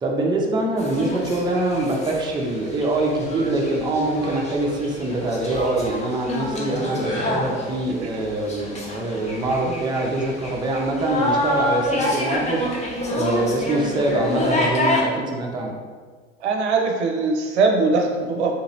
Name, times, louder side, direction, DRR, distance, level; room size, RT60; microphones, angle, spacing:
voice 1, 0.0-12.8 13.1-15.7, right 2 dB, 15° right, -1 dB, 0.5 m, -24 dB
sound 1, 0.8-15.0, left 1 dB, 20° left, 0.7 m, -28 dB
voice 2, 16.4-18.5, right 3 dB, 75° right, 2 dB, 0.6 m, -21 dB
3.6 x 2.9 x 2.7 m, 1.6 s
figure-of-eight pair, 75°, 34 cm